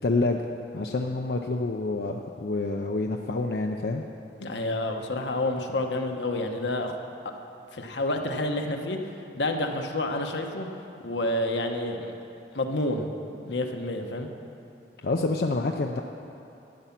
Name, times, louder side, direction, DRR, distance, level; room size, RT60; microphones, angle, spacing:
voice 1, 0.0-0.4 0.7-4.0 15.0-16.0, left 2 dB, 60° left, 2 dB, 0.5 m, -27 dB
voice 2, 4.4-7.0 7.7-9.0 9.3-10.7 11.0-12.1 12.5-13.1 13.4-14.3, left 1 dB, 85° left, 4 dB, 1.0 m, -29 dB
12.5 x 9.1 x 5.9 m, 2.8 s
head